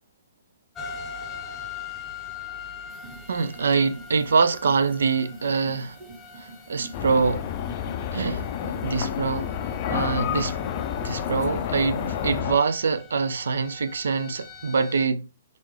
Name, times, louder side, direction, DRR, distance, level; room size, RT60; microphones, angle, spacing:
sound 1, 0.7-15.1, left 6 dB, 15° left, 0.7 m, -42 dB
sound 2, 2.9-12.4, right 3 dB, 20° right, 1.6 m, -44 dB
voice 1, 3.3-6.0 6.4-7.5 8.1-8.4 8.8-9.5 9.9-10.6 11.0-15.3, right 5 dB, 75° right, 0.4 m, -24 dB
sound 3, 6.9-12.6, left 10 dB, 40° left, 0.3 m, -29 dB
3.9 x 3.3 x 3.1 m
hypercardioid pair, 135°, 0 cm